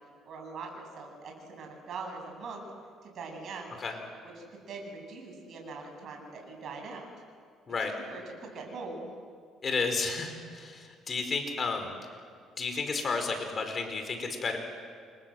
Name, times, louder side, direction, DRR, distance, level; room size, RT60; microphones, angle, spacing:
voice 1, 0.2-2.7 3.0-3.7 4.2-7.1 8.1-9.1, right 4 dB, 55° right, 2 dB, 7.9 m, -42 dB
voice 2, 9.6-11.9 12.6-14.6, left 4 dB, 35° left, 5 dB, 4.9 m, -32 dB
29.0 x 26.5 x 7.9 m, 2.1 s
cardioid pair, 110°, 0 cm